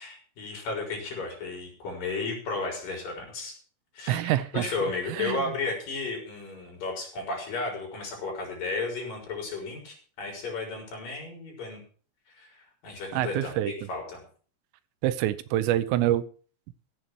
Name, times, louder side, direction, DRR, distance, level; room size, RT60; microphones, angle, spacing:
voice 1, 0.0-3.5 3.9-11.8 12.4-13.5 13.9-14.2, left 3 dB, 45° left, 1 dB, 6.0 m, -34 dB
voice 2, 4.1-4.7 5.1-5.4 13.1-13.7 15.0-16.2, right 13 dB, 85° right, 14 dB, 3.5 m, -26 dB
15.5 x 8.3 x 6.1 m, 0.42 s
omnidirectional pair, 5.7 m